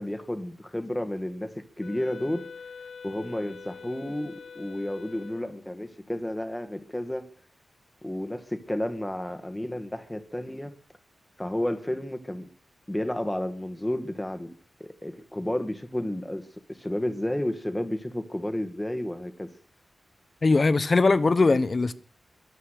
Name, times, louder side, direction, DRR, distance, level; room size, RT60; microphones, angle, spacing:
voice 1, 0.0-2.5 3.0-7.3 8.0-10.7 11.4-12.5 12.9-14.5 14.8-19.5, left 1 dB, 10° left, 2.0 m, -31 dB
Wind instrument woodwind instrument, 1.8-5.6, left 6 dB, 75° left, 1.1 m, -44 dB
voice 2, 20.4-21.9, left 3 dB, 40° left, 1.1 m, -20 dB
23.5 x 8.4 x 6.7 m
wide cardioid pair, 105°, 0 cm